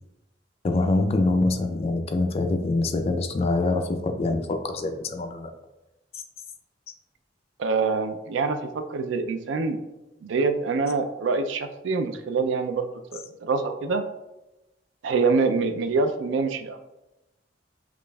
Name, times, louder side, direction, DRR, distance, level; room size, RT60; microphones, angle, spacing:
voice 1, 0.6-5.5 6.1-6.2, left 2 dB, 35° left, 5 dB, 0.4 m, -25 dB
voice 2, 7.6-9.8 10.2-14.0 15.0-16.8, right 4 dB, 80° right, 7 dB, 0.4 m, -25 dB
5.1 x 2.4 x 2.2 m, 0.99 s
head